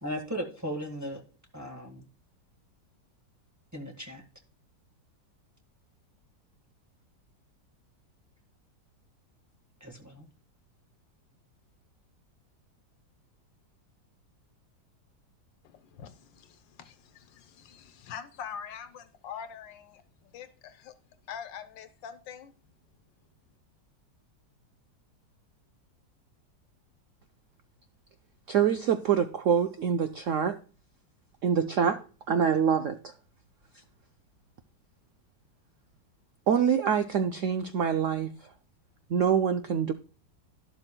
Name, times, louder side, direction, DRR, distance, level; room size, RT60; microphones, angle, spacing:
voice 1, 0.0-1.2 1.5-2.1 3.7-4.2 9.8-10.2, equal, 10° right, 1.3 m, -36 dB
voice 2, 15.6-20.9 21.3-22.6, left 8 dB, 90° left, 1.7 m, -44 dB
voice 3, 28.5-30.6 31.4-33.1 36.5-38.3 39.1-39.9, right 7 dB, 70° right, 0.7 m, -25 dB
12.0 x 11.5 x 2.2 m
omnidirectional pair, 1.9 m